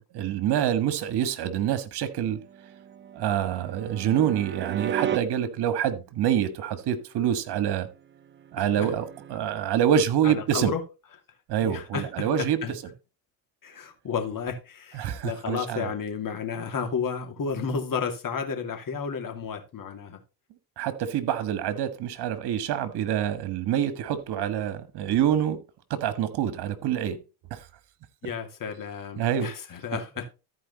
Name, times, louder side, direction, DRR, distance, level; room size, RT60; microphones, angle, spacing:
voice 1, 0.1-2.4 3.1-7.9 8.5-9.0 9.3-10.7 11.5-12.6 14.9-15.9 20.8-25.6 25.9-27.2 27.5-27.6 29.2-29.5, right 9 dB, 55° right, 1.7 m, -26 dB
sound 1, 2.3-5.2 8.1-9.4, right 9 dB, 25° right, 0.5 m, -35 dB
voice 2, 8.6-8.9 10.2-10.8 11.6-12.7 13.6-20.2 28.2-30.2, left 6 dB, 45° left, 2.7 m, -32 dB
14.0 x 4.7 x 4.1 m
supercardioid pair, 75°, 46 cm